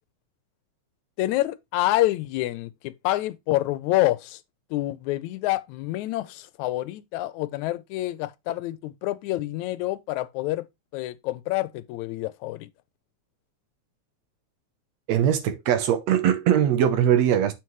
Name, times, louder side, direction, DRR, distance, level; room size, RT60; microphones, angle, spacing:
voice 1, 1.2-4.4 4.7-10.7 10.9-12.7, left 16 dB, 80° left, 1.9 m, -27 dB
voice 2, 15.1-17.5, right 10 dB, 70° right, 1.9 m, -21 dB
7.6 x 5.8 x 3.1 m
omnidirectional pair, 3.4 m